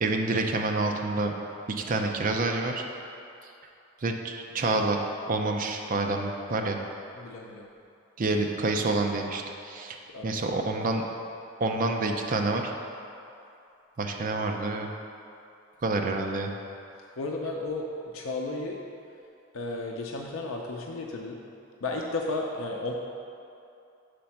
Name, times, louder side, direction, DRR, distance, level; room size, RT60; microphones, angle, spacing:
voice 1, 0.0-1.3 1.7-2.8 4.0-5.0 5.3-6.8 8.2-10.0 10.2-11.0 11.6-12.7 14.0-14.9 15.8-16.5, right 2 dB, 40° right, 3 dB, 0.5 m, -28 dB
voice 2, 7.1-7.7 10.1-10.4 17.2-17.9 18.1-18.8 19.5-21.4 21.8-22.9, left 2 dB, 80° left, 0 dB, 0.5 m, -33 dB
5.1 x 4.3 x 5.8 m, 2.6 s
head